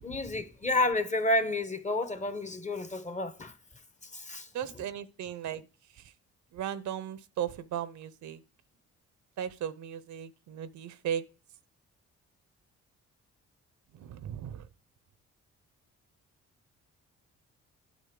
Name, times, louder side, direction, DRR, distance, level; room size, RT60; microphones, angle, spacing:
voice 1, 0.0-3.6 4.0-4.9, left 2 dB, 25° left, 0.9 m, -31 dB
voice 2, 4.5-5.6 6.5-8.4 9.4-11.2 14.0-14.6, right 9 dB, 70° right, 0.6 m, -36 dB
8.4 x 6.3 x 3.7 m
cardioid pair, 75°, 30 cm